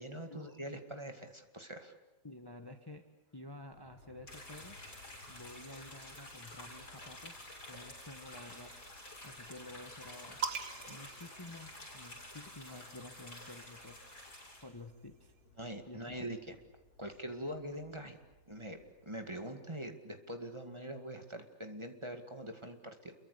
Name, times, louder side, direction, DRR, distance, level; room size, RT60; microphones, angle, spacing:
voice 1, 0.0-1.9 10.9-11.0 15.6-16.6 17.0-18.2 18.5-18.8 19.1-23.1, right 1 dB, 20° right, 5 dB, 2.1 m, -43 dB
voice 2, 2.2-3.0 3.3-4.8 5.3-8.7 9.2-10.4 10.9-14.4 14.6-15.3 15.8-16.3, left 2 dB, 15° left, 6 dB, 1.4 m, -51 dB
Aircraft, 3.7-19.9, left 3 dB, 85° left, 3.1 m, -63 dB
sound 1, 4.3-14.6, left 1 dB, 60° left, 7.8 m, -50 dB
sound 2, 10.4-12.2 13.3-15.0, right 6 dB, 75° right, 1.9 m, -43 dB
29.0 x 23.5 x 8.3 m, 0.97 s
omnidirectional pair, 1.7 m